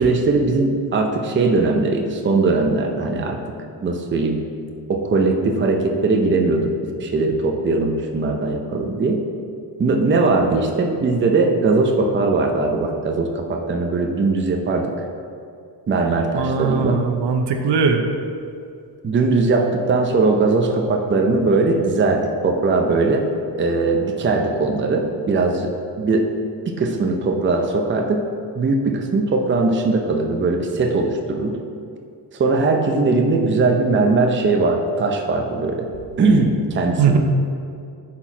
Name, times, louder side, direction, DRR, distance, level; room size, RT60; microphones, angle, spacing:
voice 1, 0.0-3.4 3.8-4.4 4.9-9.2 9.8-14.9 15.9-17.0 19.0-23.3 23.6-26.3 26.7-28.2 28.6-31.6 32.4-35.9 36.2-37.2, right 3 dB, 25° right, 2 dB, 0.6 m, -20 dB
voice 2, 16.3-18.0 37.0-37.2, right 5 dB, 70° right, 5 dB, 0.8 m, -19 dB
11.0 x 4.6 x 4.4 m, 2.4 s
wide cardioid pair, 165°, 43 cm